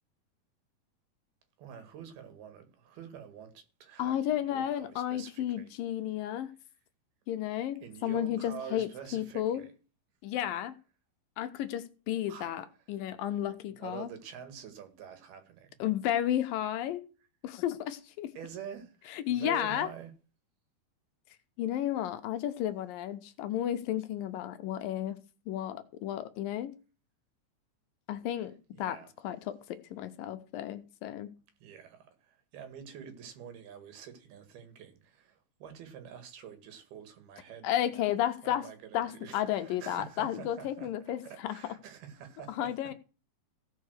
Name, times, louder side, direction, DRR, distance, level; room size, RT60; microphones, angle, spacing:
voice 1, 1.6-5.7 7.8-9.7 12.3-12.5 13.8-15.7 18.3-20.1 28.4-29.1 31.6-37.8 38.4-42.9, right 8 dB, 85° right, 4.0 m, -47 dB
voice 2, 4.0-6.5 7.3-9.6 10.2-10.8 11.4-14.1 15.8-17.1 17.4-18.3 19.1-19.9 21.6-25.2 25.5-26.7 28.1-29.0 29.2-31.4 37.6-38.7 38.9-41.6 42.5-42.9, left 11 dB, 75° left, 2.4 m, -33 dB
16.5 x 5.6 x 6.5 m
omnidirectional pair, 4.3 m